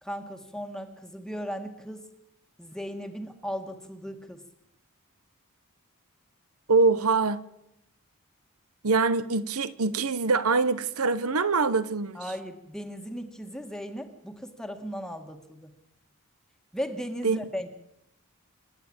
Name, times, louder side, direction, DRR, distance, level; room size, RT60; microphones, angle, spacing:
voice 1, 0.0-2.1 2.6-4.4 12.1-15.7 16.7-17.7, equal, 5° left, 5 dB, 1.7 m, -37 dB
voice 2, 6.7-7.4 8.8-12.2 17.2-17.4, right 4 dB, 80° right, 16 dB, 1.0 m, -24 dB
27.0 x 11.5 x 8.8 m, 0.84 s
head